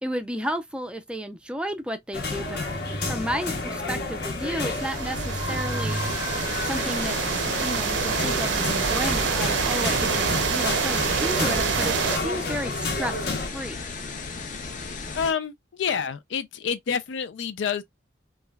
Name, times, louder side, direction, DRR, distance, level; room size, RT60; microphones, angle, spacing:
voice 1, 0.0-2.6 3.1-6.0 6.6-7.3 7.6-12.0 12.2-13.8, equal, 5° right, 0.4 m, -32 dB
sound 1, 2.1-13.5, left 2 dB, 60° left, 0.9 m, -30 dB
sound 2, 4.4-12.2, right 6 dB, 80° right, 0.6 m, -27 dB
sound 3, 5.9-15.3, left 4 dB, 45° left, 0.6 m, -36 dB
voice 2, 15.1-17.8, left 7 dB, 90° left, 0.4 m, -28 dB
3.1 x 2.3 x 2.3 m
head